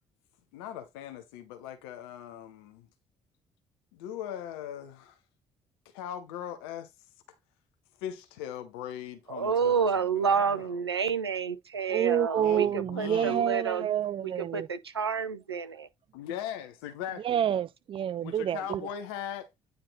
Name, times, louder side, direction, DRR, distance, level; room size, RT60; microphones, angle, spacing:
voice 1, 0.5-2.9 3.9-5.2 5.9-6.9 8.0-10.7 12.4-13.5 16.1-17.3 18.2-19.5, left 10 dB, 70° left, 1.0 m, -39 dB
voice 2, 9.3-12.7 13.0-13.8 14.5-15.9, right 6 dB, 85° right, 0.6 m, -29 dB
voice 3, 11.9-14.7 17.2-18.9, right 9 dB, 45° right, 0.5 m, -28 dB
9.4 x 4.1 x 4.0 m
figure-of-eight pair, 45°, 13 cm